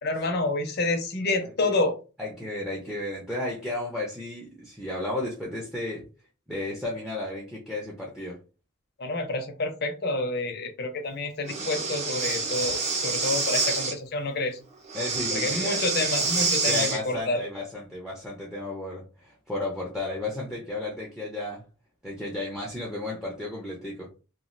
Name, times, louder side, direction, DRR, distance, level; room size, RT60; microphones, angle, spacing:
voice 1, 0.0-1.9 9.0-14.6 15.3-17.4, left 2 dB, 50° left, 5 dB, 0.6 m, -28 dB
voice 2, 1.4-1.8 2.2-6.0 6.5-8.4 12.6-12.8 14.9-15.8 16.7-21.6 22.0-24.1, left 2 dB, ahead, -3 dB, 0.6 m, -33 dB
Breathing, 11.5-13.9 14.9-17.0, right 4 dB, 35° right, 0.7 m, -27 dB
3.0 x 2.4 x 2.6 m, 0.33 s
head